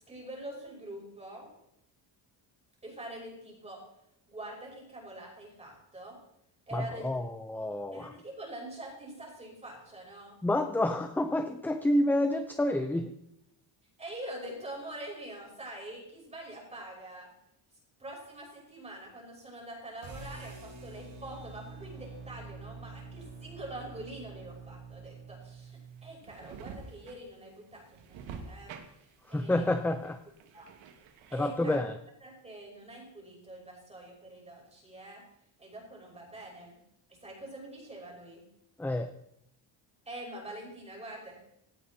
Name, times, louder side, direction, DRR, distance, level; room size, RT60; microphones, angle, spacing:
voice 1, 0.1-1.5 2.8-3.8 4.3-6.2 6.7-7.2 7.9-10.4 14.0-17.3 18.0-28.7 29.0-29.6 30.5-30.7 31.3-31.8 32.2-35.2 35.6-36.8 37.1-38.4 40.1-41.4, right 1 dB, 15° right, -1 dB, 5.9 m, -45 dB
voice 2, 6.7-8.1 10.4-13.1 29.3-30.2 31.3-32.0 38.8-39.1, left 1 dB, 5° left, 7 dB, 0.5 m, -29 dB
sound 1, 20.0-26.2, right 4 dB, 65° right, 7.1 m, -46 dB
sound 2, 25.6-31.6, right 6 dB, 85° right, 2.5 m, -48 dB
18.0 x 17.5 x 4.4 m, 0.76 s
cardioid pair, 180°, 45 cm